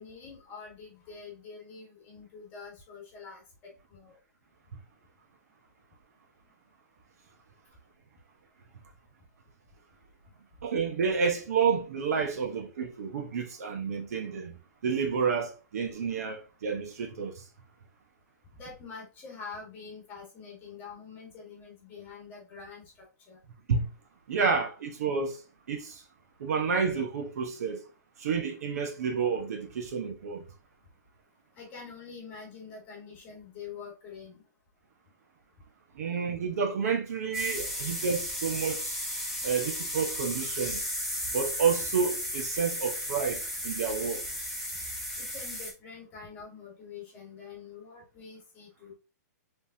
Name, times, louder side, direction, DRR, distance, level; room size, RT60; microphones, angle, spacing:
voice 1, 0.0-3.4 3.9-4.1 18.6-22.8 23.3-23.4 31.5-34.4 45.2-48.9, left 5 dB, 20° left, 1.7 m, -45 dB
voice 2, 10.6-14.5 14.8-17.4 23.7-23.8 24.3-25.4 25.7-26.0 26.4-27.8 28.2-30.4 35.9-39.0 39.4-40.8 41.3-44.2, right 5 dB, 60° right, 1.1 m, -30 dB
sound 1, 37.3-45.7, equal, 5° right, 1.6 m, -34 dB
5.2 x 3.4 x 2.8 m
hypercardioid pair, 160°, 10 cm